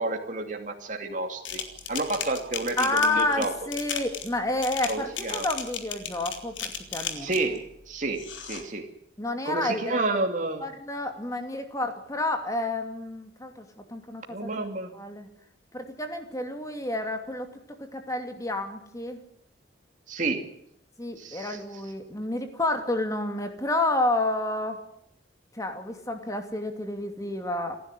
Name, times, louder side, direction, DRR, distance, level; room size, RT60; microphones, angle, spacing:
voice 1, 0.0-1.6 1.9-3.5 4.9-5.5 7.1-8.8 9.4-10.6 14.3-14.9 20.1-20.5 21.2-21.6, right 2 dB, 40° right, 2 dB, 2.5 m, -30 dB
sound 1, 1.4-7.6 8.1-8.6, left 7 dB, 80° left, 3.5 m, -35 dB
voice 2, 2.8-7.3 9.2-10.0 10.6-14.7 14.9-15.3 15.7-17.6 17.9-19.2 21.0-24.8 25.5-27.8, left 2 dB, 15° left, 6 dB, 2.7 m, -30 dB
29.0 x 11.0 x 9.8 m, 0.72 s
head